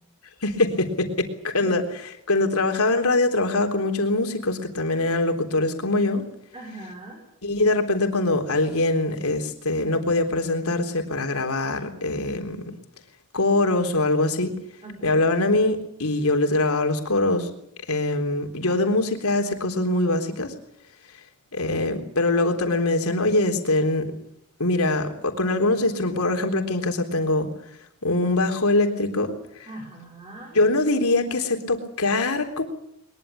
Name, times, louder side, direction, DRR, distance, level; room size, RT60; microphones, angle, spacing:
voice 1, 0.4-1.8 2.3-6.2 7.4-12.7 13.3-14.5 15.0-17.5 17.9-20.5 21.5-24.1 24.6-27.5 28.0-29.7 30.5-32.6, left 2 dB, 85° left, 5 dB, 3.7 m, -23 dB
voice 2, 6.5-7.2 14.8-15.2 18.6-18.9 29.7-30.6, right 1 dB, 25° right, 0 dB, 5.7 m, -41 dB
22.0 x 22.0 x 8.7 m, 0.72 s
head